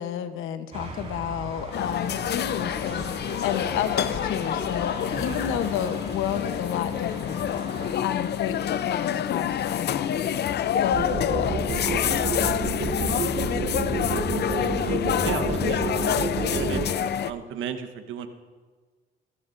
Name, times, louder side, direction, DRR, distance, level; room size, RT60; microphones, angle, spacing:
voice 1, 0.0-3.0 3.4-7.5 8.0-10.3 10.8-12.1, left 9 dB, 85° left, 10 dB, 0.9 m, -31 dB
sound 1, 0.7-7.9, right 2 dB, 30° right, 4.9 m, -39 dB
sound 2, 1.7-17.3, left 10 dB, 55° left, 0.5 m, -27 dB
sound 3, 10.9-16.8, right 4 dB, 50° right, 4.7 m, -28 dB
voice 2, 13.2-14.0 14.6-16.9 17.3-18.3, right 8 dB, 85° right, 8 dB, 1.1 m, -36 dB
23.0 x 14.5 x 2.6 m, 1.4 s
cardioid pair, 90°, 20 cm